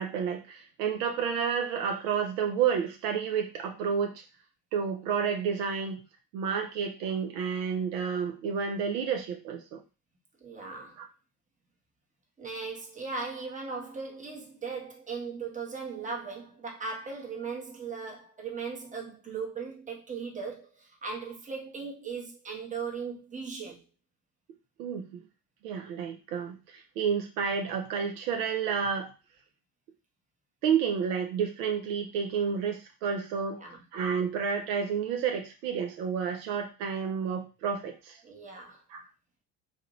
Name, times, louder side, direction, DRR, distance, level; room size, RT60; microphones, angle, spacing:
voice 1, 0.0-4.2 4.7-6.0 6.3-9.8 11.0-11.1 24.8-25.2 25.6-29.1 30.6-33.6 33.9-38.2 38.9-39.0, right 7 dB, 70° right, 0.8 m, -30 dB
voice 2, 10.4-11.0 12.4-23.8 33.6-33.8 38.2-38.8, right 5 dB, 15° right, 1.0 m, -38 dB
2.9 x 2.5 x 3.0 m
hypercardioid pair, 70°, 47 cm